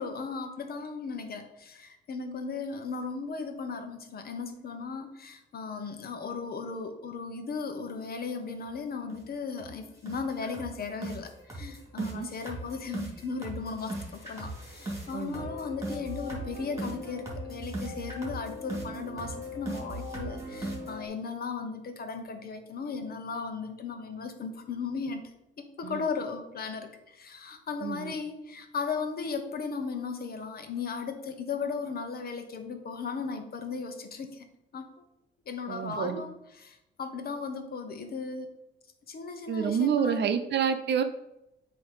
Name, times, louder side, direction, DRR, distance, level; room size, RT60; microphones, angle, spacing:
voice 1, 0.0-34.5 34.7-35.0 35.5-38.5 39.1-40.3, left 5 dB, 50° left, 7 dB, 1.0 m, -36 dB
sound 1, 8.6-8.7 9.1-9.3 9.6-9.7 10.1-21.1, right 1 dB, 15° right, 2.5 m, -38 dB
voice 2, 12.0-12.3 15.1-15.5 25.8-26.1 27.8-28.1 35.7-36.2 39.5-41.0, right 7 dB, 60° right, 9 dB, 0.7 m, -28 dB
7.9 x 3.0 x 5.2 m, 0.85 s
cardioid pair, 90°, 20 cm